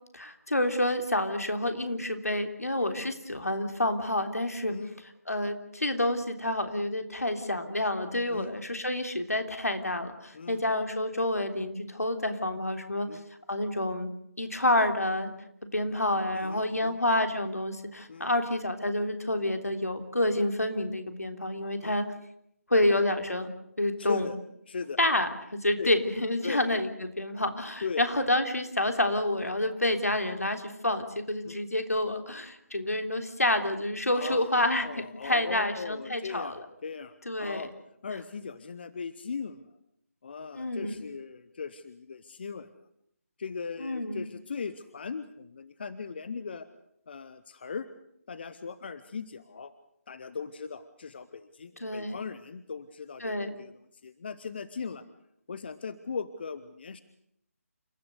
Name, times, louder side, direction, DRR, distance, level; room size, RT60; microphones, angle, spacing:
voice 1, 0.1-4.7 5.3-13.1 13.5-14.1 14.4-15.3 15.7-22.1 22.7-23.5 23.8-24.3 25.0-34.9 35.2-36.6 37.2-37.7 40.5-41.0 43.8-44.3 51.8-52.2 53.2-53.5, left 1 dB, 75° left, 7 dB, 3.5 m, -28 dB
voice 2, 4.7-5.0 8.3-8.5 10.3-10.6 13.1-13.2 16.3-17.0 18.1-18.3 21.8-22.0 24.0-24.4 24.7-25.0 25.8-25.9 26.4-26.6 27.8-28.0 31.4-31.6 34.1-37.7 38.0-39.7 40.2-42.7 43.4-46.7 47.1-47.9 48.3-49.7 50.1-55.0 55.5-57.0, left 5 dB, 40° left, 13 dB, 1.1 m, -38 dB
29.0 x 15.5 x 8.2 m, 0.74 s
figure-of-eight pair, 150°, 8 cm